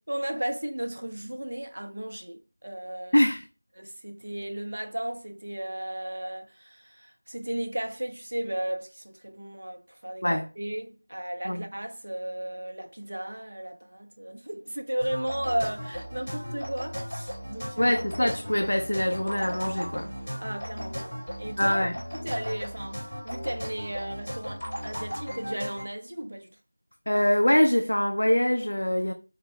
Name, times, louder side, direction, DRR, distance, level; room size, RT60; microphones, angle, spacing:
voice 1, 0.1-3.2 3.8-18.0 20.4-21.8 22.1-26.5, right 1 dB, 35° right, 0.5 m, -35 dB
voice 2, 3.1-3.4 10.2-10.5 11.5-11.6 17.8-20.1 21.6-21.9 27.1-29.1, equal, 60° left, 0.4 m, -24 dB
sound 1, 15.0-25.8, equal, 15° left, 0.8 m, -36 dB
4.3 x 2.0 x 3.2 m
figure-of-eight pair, 180°, 0 cm